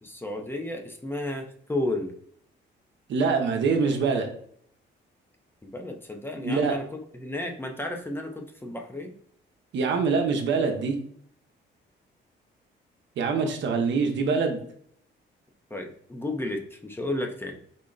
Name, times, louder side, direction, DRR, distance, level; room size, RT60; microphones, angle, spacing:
voice 1, 0.0-2.1 5.6-6.9 7.2-9.1 15.7-17.6, left 1 dB, 10° left, 3 dB, 0.6 m, -32 dB
voice 2, 3.1-4.3 6.3-6.8 9.7-11.0 13.2-14.6, right 4 dB, 70° right, 4 dB, 0.8 m, -24 dB
3.9 x 2.1 x 3.8 m, 0.64 s
cardioid pair, 90°, 20 cm